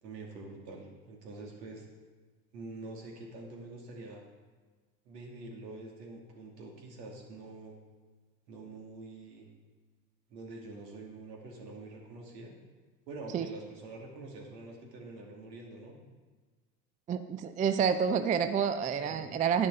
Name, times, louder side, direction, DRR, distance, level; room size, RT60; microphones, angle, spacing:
voice 1, 0.0-1.8 2.5-4.2 5.1-7.8 8.5-9.5 10.3-12.5 13.1-16.0 19.0-19.3, right 2 dB, 75° right, 0 dB, 2.5 m, -46 dB
voice 2, 17.1-19.7, right 7 dB, 15° right, 10 dB, 0.4 m, -28 dB
10.5 x 9.7 x 3.7 m, 1.4 s
hypercardioid pair, 75°, 50 cm